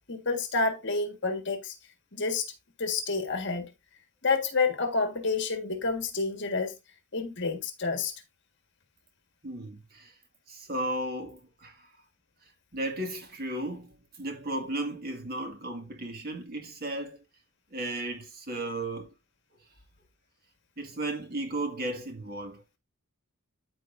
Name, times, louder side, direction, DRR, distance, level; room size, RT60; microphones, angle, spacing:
voice 1, 0.1-1.7 2.1-2.4 2.8-3.7 4.2-6.7 7.1-8.1, left 4 dB, 50° left, 1.6 m, -29 dB
voice 2, 9.4-10.1 10.5-11.9 12.7-17.2 17.7-19.1 20.8-22.8, right 1 dB, 45° right, 2.0 m, -35 dB
13.5 x 4.5 x 2.6 m
head